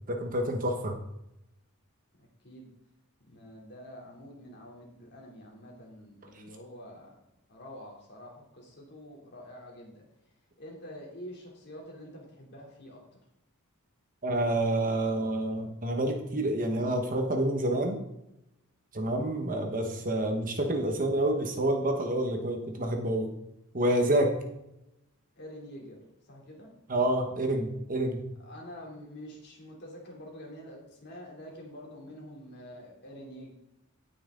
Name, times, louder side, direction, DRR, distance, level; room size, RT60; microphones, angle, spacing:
voice 1, 0.1-1.0 14.2-18.0 18.9-23.3 23.7-24.3 26.9-28.3, right 1 dB, 40° right, 3 dB, 1.4 m, -28 dB
voice 2, 2.2-2.7 3.2-7.1 7.5-10.1 10.6-13.2 25.4-26.0 26.3-26.7 28.4-33.5, equal, 50° left, -2 dB, 3.2 m, -47 dB
17.5 x 6.1 x 3.9 m, 0.85 s
head